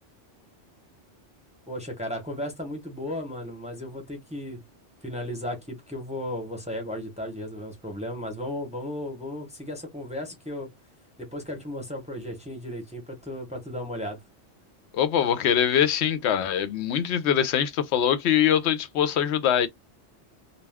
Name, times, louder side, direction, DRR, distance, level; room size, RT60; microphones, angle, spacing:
voice 1, 1.7-4.6 5.0-10.7 11.2-14.2, left 1 dB, 5° right, 0.7 m, -35 dB
voice 2, 14.9-19.7, left 9 dB, 75° left, 0.8 m, -23 dB
2.3 x 2.2 x 3.3 m
omnidirectional pair, 1.2 m